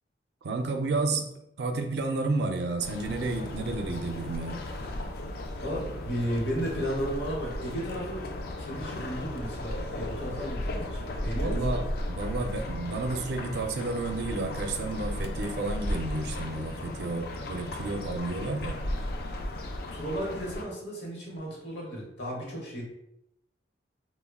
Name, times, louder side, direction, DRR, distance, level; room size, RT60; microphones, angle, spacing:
voice 1, 0.4-4.6 11.4-18.8, right 3 dB, 65° right, 5 dB, 0.4 m, -31 dB
sound 1, 2.8-20.6, left 1 dB, 55° left, 0.3 m, -35 dB
voice 2, 5.6-8.3 8.6-11.8 19.9-22.8, equal, 80° left, -2 dB, 0.9 m, -34 dB
3.5 x 2.0 x 2.2 m, 0.81 s
head